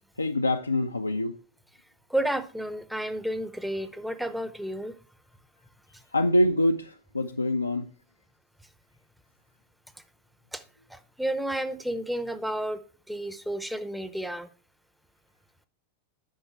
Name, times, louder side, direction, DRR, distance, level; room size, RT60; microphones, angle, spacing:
voice 1, 0.2-1.4 6.1-7.9, left 1 dB, 80° left, 0.4 m, -25 dB
voice 2, 2.1-4.9 10.5-10.6 10.9-12.8 13.1-14.5, right 1 dB, ahead, 0.7 m, -31 dB
8.8 x 5.7 x 4.6 m
figure-of-eight pair, 90°, 0 cm